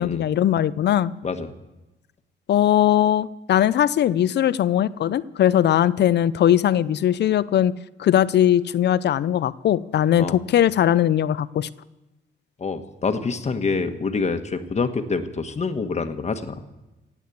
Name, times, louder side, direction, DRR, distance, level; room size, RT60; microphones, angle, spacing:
voice 1, 0.0-1.1 2.5-7.7 8.0-11.7, left 11 dB, 60° left, 18 dB, 0.6 m, -20 dB
voice 2, 12.6-16.6, left 4 dB, 35° left, 8 dB, 1.3 m, -26 dB
17.0 x 8.3 x 8.4 m, 1.0 s
cardioid pair, 90°, 20 cm